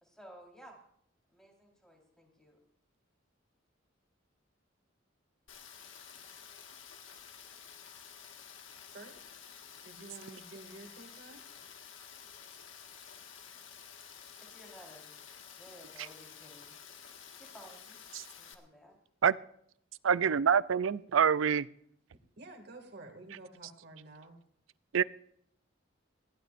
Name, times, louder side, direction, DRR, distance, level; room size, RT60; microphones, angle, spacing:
voice 1, 0.0-0.8 1.3-2.6 14.4-15.2 15.5-18.0 18.4-18.9, equal, 5° left, 4.2 m, -55 dB
Rain, 5.5-18.5, left 7 dB, 75° left, 1.8 m, -51 dB
voice 2, 9.8-11.4 22.4-24.4, right 2 dB, 60° right, 2.4 m, -50 dB
voice 3, 20.0-21.7 24.9-25.0, right 7 dB, 85° right, 0.5 m, -26 dB
21.0 x 15.5 x 2.6 m
head